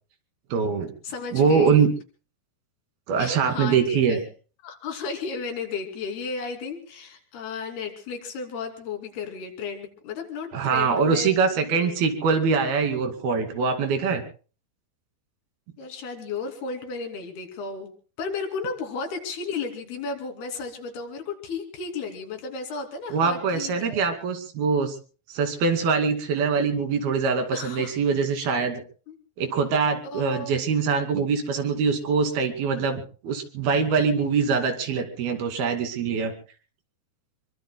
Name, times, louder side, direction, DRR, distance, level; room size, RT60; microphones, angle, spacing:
voice 1, 0.5-0.9 1.3-1.9 3.1-4.2 10.5-14.2 23.1-25.0 25.3-28.8 29.4-36.3, right 5 dB, 75° right, 6 dB, 4.4 m, -23 dB
voice 2, 1.0-1.8 3.2-4.2 4.6-11.3 11.8-12.2 15.8-17.9 18.2-24.1 27.5-27.9 29.1-29.2 30.0-30.5, left 4 dB, 85° left, 4 dB, 4.8 m, -34 dB
26.5 x 23.5 x 2.2 m, 0.38 s
omnidirectional pair, 4.4 m